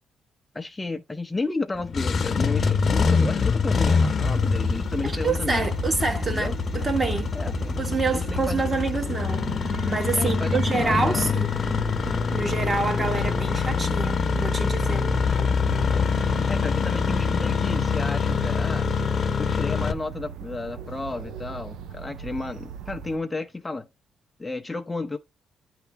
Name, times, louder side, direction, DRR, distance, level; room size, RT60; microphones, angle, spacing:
voice 1, 0.5-5.7 6.3-6.6 7.3-7.8 8.1-8.6 10.1-11.4 13.0-13.1 15.9-16.0 16.5-18.9 19.4-23.9 24.4-25.2, left 3 dB, 15° left, 0.7 m, -32 dB
Engine starting, 1.8-19.9, left 5 dB, 45° left, 0.9 m, -25 dB
sound 1, 4.2-23.2, right 7 dB, 85° right, 0.6 m, -38 dB
voice 2, 5.0-7.4 7.8-9.5 9.8-11.5 12.3-15.1, right 3 dB, 30° right, 1.4 m, -27 dB
10.0 x 3.4 x 2.8 m
cardioid pair, 90°, 0 cm